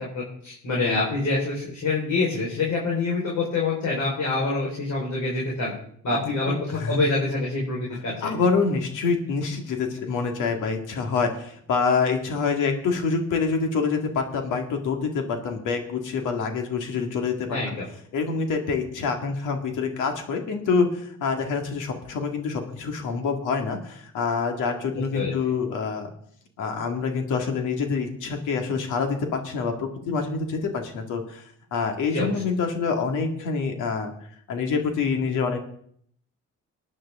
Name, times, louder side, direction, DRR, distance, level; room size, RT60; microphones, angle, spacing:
voice 1, 0.1-5.7 6.0-8.3 17.5-17.8 25.1-25.3 32.1-32.3, left 3 dB, 65° left, -4 dB, 4.6 m, -26 dB
voice 2, 6.5-7.0 8.2-17.6 18.1-26.1 26.6-31.4 31.7-34.1 34.5-35.6, left 5 dB, 90° left, 4 dB, 2.1 m, -26 dB
19.5 x 9.9 x 3.7 m, 0.65 s
cardioid pair, 90°, 30 cm